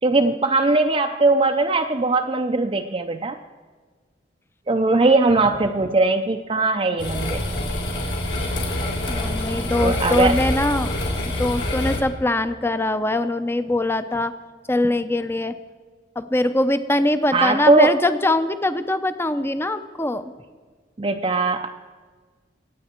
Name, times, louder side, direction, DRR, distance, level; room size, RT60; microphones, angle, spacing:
voice 1, 0.0-3.4 4.7-7.4 9.8-10.4 17.3-17.9 21.0-21.7, right 3 dB, 30° right, 4 dB, 0.5 m, -20 dB
sound 1, 7.0-12.0, left 1 dB, 75° left, 3.7 m, -26 dB
voice 2, 9.1-10.9 11.4-14.3 14.7-15.5 16.2-20.3, left 1 dB, 15° left, 11 dB, 0.6 m, -22 dB
24.0 x 9.1 x 4.4 m, 1.5 s
head